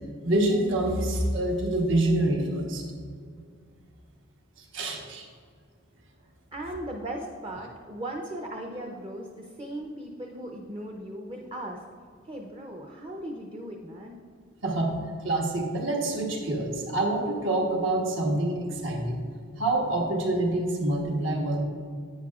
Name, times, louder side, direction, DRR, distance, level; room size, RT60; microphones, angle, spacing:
voice 1, 0.2-2.8 4.7-5.3 14.6-15.0 15.2-19.3 19.6-21.6, right 1 dB, 65° right, 0 dB, 1.2 m, -26 dB
voice 2, 6.5-11.8 12.2-14.2, right 1 dB, 25° right, 1 dB, 0.6 m, -37 dB
11.0 x 8.8 x 2.4 m, 2.2 s
head